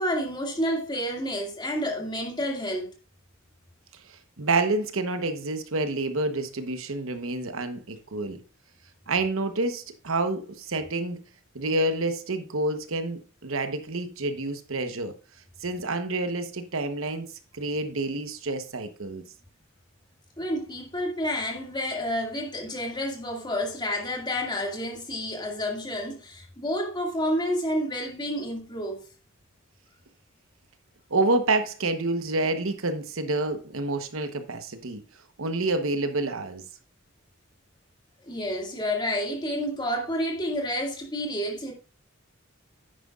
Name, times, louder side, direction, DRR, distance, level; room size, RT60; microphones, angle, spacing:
voice 1, 0.0-2.9 20.4-29.1 38.2-41.7, equal, 20° left, 2.2 m, -29 dB
voice 2, 4.1-8.4 9.1-11.2 11.5-15.1 15.6-17.3 17.5-19.2 31.1-35.0 35.4-36.6, right 2 dB, 70° right, 1.1 m, -28 dB
10.0 x 9.4 x 2.4 m
head